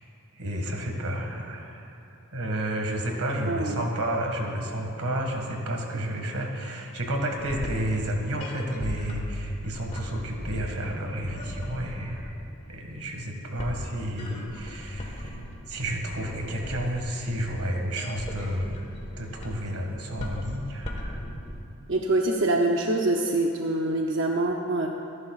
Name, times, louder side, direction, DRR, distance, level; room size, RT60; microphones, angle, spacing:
voice 1, 0.3-2.0 2.3-12.3 12.7-15.4 15.7-18.9 19.2-21.3, right 1 dB, 90° right, 1 dB, 1.9 m, -31 dB
voice 2, 3.5-3.8 21.9-24.9, right 2 dB, 55° right, 1 dB, 0.7 m, -25 dB
sound 1, 7.3-21.6, equal, 30° left, 1.5 m, -38 dB
26.0 x 11.0 x 2.4 m, 3.0 s
head